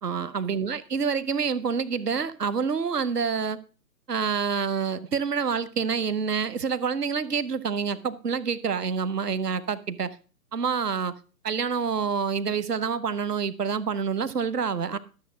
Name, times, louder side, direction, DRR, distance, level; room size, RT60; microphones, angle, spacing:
voice 1, 0.0-3.6 4.1-10.2 10.5-11.1 11.4-15.0, right 6 dB, 70° right, 1.2 m, -27 dB
13.0 x 7.5 x 4.8 m
figure-of-eight pair, 125°, 49 cm